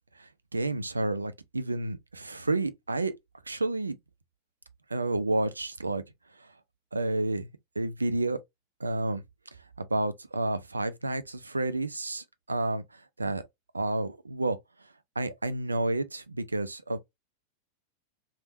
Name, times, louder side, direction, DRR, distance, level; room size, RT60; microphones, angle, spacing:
voice 1, 0.2-3.1 3.5-4.0 4.9-6.0 6.4-6.5 6.9-7.5 7.8-8.4 8.8-9.2 9.8-13.4 13.7-14.6 15.2-17.0, right 2 dB, 80° right, 0.4 m, -30 dB
3.5 x 2.5 x 2.7 m
figure-of-eight pair, 90°, 0 cm